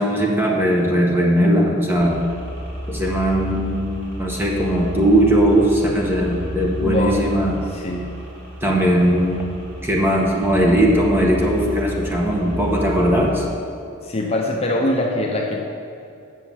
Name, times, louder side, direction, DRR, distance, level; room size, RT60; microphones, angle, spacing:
voice 1, 0.0-2.2 2.9-7.6 8.6-9.5 9.8-13.4, equal, 10° right, -2 dB, 1.3 m, -19 dB
sound 1, 2.0-13.4, equal, 60° right, 2.7 m, -32 dB
voice 2, 6.8-7.2 7.7-8.1 14.0-15.6, left 1 dB, 30° left, 0 dB, 0.7 m, -22 dB
8.3 x 6.8 x 7.3 m, 2.5 s
head